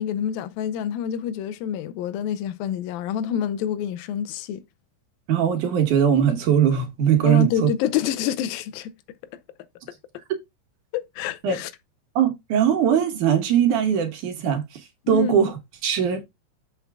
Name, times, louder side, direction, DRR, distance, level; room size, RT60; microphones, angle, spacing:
voice 1, 0.0-4.6 7.2-8.9 10.9-11.7 15.1-15.3, left 9 dB, 85° left, 2.5 m, -27 dB
voice 2, 5.3-7.7 11.4-11.6 12.2-14.6 15.1-16.2, right 8 dB, 65° right, 2.5 m, -20 dB
7.2 x 5.9 x 3.4 m
omnidirectional pair, 4.0 m